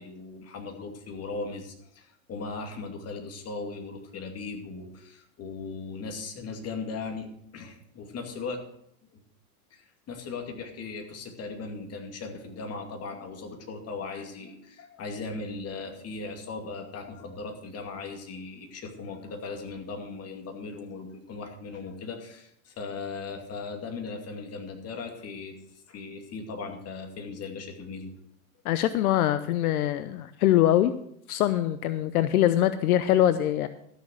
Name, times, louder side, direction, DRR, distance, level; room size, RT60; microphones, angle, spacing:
voice 1, 0.0-8.6 9.1-9.2 9.7-28.1, left 4 dB, 35° left, 4 dB, 2.3 m, -38 dB
voice 2, 28.6-30.9 31.3-33.7, left 12 dB, 75° left, 13 dB, 0.7 m, -23 dB
13.5 x 6.4 x 6.2 m, 0.72 s
hypercardioid pair, 105°, 44 cm